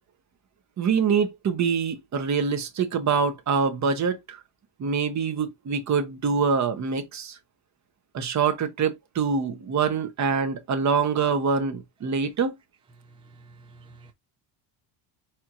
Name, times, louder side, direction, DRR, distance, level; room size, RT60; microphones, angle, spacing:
voice 1, 0.8-4.4 4.8-7.3 8.1-12.5, right 5 dB, 35° right, 1.0 m, -25 dB
voice 2, 13.5-14.1, right 3 dB, 10° right, 0.4 m, -50 dB
4.5 x 4.4 x 2.5 m
cardioid pair, 155°, 50 cm